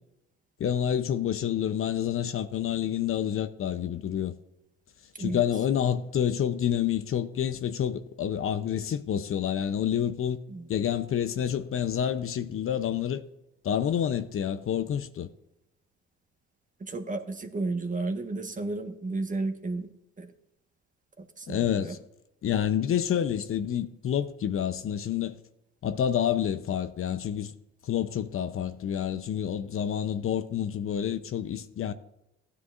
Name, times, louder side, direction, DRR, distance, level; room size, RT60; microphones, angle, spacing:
voice 1, 0.6-4.3 5.2-10.4 10.7-13.2 13.6-15.3 21.5-22.0 22.4-25.3 25.8-27.5 27.8-31.9, left 9 dB, 45° left, 0.7 m, -28 dB
voice 2, 16.8-19.9 20.2-20.3 21.2-21.9, right 3 dB, 25° right, 1.3 m, -33 dB
15.5 x 9.7 x 2.5 m
supercardioid pair, 75°, 29 cm